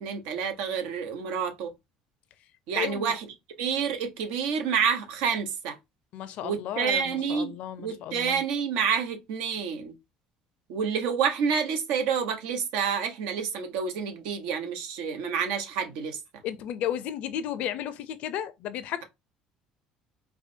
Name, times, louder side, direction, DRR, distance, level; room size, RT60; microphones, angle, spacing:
voice 1, 0.0-1.7 2.7-3.3 3.6-5.8 6.4-7.5 7.8-9.9 10.7-16.2, right 6 dB, 85° right, 1.0 m, -28 dB
voice 2, 2.8-3.1 6.1-8.4 16.4-19.0, left 10 dB, 65° left, 0.5 m, -33 dB
4.7 x 2.3 x 2.7 m
cardioid pair, 125°, 3 cm